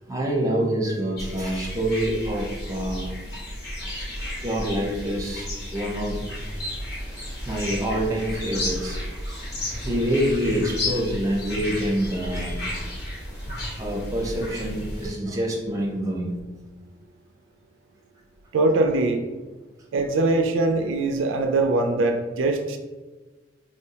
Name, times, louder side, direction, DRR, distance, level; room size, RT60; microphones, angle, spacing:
voice 1, 0.1-3.1 4.4-6.2 7.4-9.0 9.3-9.5 9.8-12.8 13.8-16.4, right 1 dB, 20° right, -1 dB, 0.6 m, -26 dB
sound 1, 1.2-15.1, left 1 dB, 60° left, 0.9 m, -33 dB
voice 2, 18.5-19.2 19.9-22.8, right 2 dB, 80° right, 5 dB, 0.3 m, -22 dB
4.2 x 2.0 x 2.7 m, 1.3 s
head